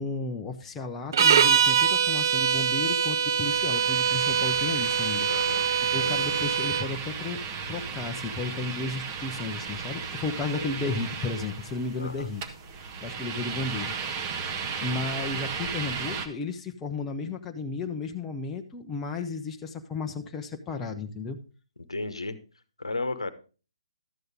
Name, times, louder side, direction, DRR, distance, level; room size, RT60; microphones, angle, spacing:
voice 1, 0.0-5.3 5.9-7.4 7.7-12.4 13.0-14.5 14.8-21.4, left 3 dB, 10° left, 3 dB, 0.7 m, -33 dB
sound 1, 1.1-6.9, right 7 dB, 40° right, 0.4 m, -24 dB
sound 2, 3.4-16.3, right 6 dB, 25° right, 0.9 m, -35 dB
voice 2, 5.3-5.7 6.0-6.4 10.5-11.0 12.0-12.3 21.8-22.4 22.8-23.3, left 2 dB, 70° left, 12 dB, 1.0 m, -34 dB
12.5 x 7.9 x 3.6 m, 0.35 s
figure-of-eight pair, 135°, 3 cm